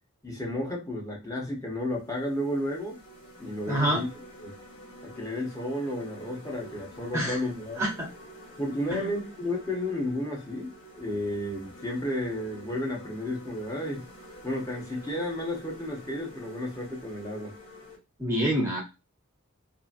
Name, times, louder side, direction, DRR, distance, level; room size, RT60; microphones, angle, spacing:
voice 1, 0.2-3.0 3.4-4.1 4.4-4.5 5.0-7.8 8.6-14.0 14.4-17.5, left 1 dB, 15° left, -1 dB, 0.7 m, -32 dB
sound 1, 1.0-1.2 1.8-18.0, right 1 dB, 75° left, 1.3 m, -48 dB
voice 2, 3.7-4.0 7.1-7.4 7.8-8.1 8.9-9.1 18.2-18.8, right 1 dB, 15° right, -1 dB, 0.6 m, -26 dB
2.8 x 2.5 x 2.4 m, 0.26 s
head